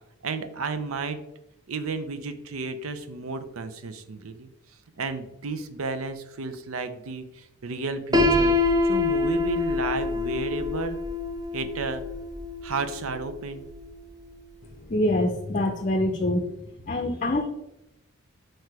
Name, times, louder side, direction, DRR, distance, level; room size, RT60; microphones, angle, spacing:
voice 1, 0.2-1.2 1.7-4.5 5.0-8.5 8.8-11.0 11.5-12.0 12.6-13.7, right 4 dB, 90° right, 10 dB, 0.6 m, -32 dB
Piano, 8.1-14.0, left 3 dB, 20° right, 0.6 m, -26 dB
voice 2, 14.9-16.5 16.9-17.5, left 1 dB, 35° left, 5 dB, 0.5 m, -25 dB
4.7 x 4.5 x 4.7 m, 0.88 s
head